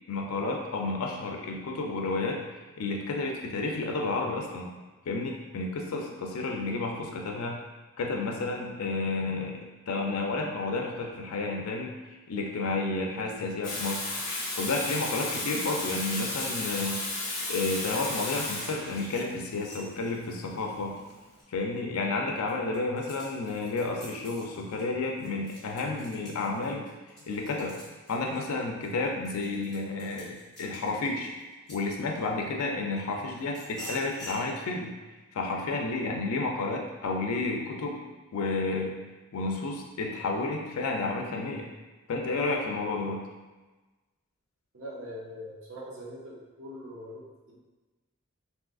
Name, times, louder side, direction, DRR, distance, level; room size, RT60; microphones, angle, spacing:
voice 1, 0.1-2.4 2.8-4.7 5.1-7.6 8.0-11.9 12.3-14.1 14.5-17.0 17.5-21.0 21.5-26.9 27.3-27.7 28.1-31.3 31.7-34.9 35.3-38.0 38.3-38.9 39.3-41.7 42.1-43.2, left 3 dB, 85° left, 1 dB, 0.4 m, -31 dB
Water tap faucet / Sink (filling or washing), 13.6-21.3, left 2 dB, 40° left, 0.7 m, -34 dB
sound 1, 19.0-21.8 22.3-32.4 33.0-34.4, equal, 5° left, 1.1 m, -48 dB
voice 2, 44.7-47.6, equal, 65° right, -3 dB, 0.6 m, -42 dB
3.6 x 2.5 x 2.4 m, 1.2 s
head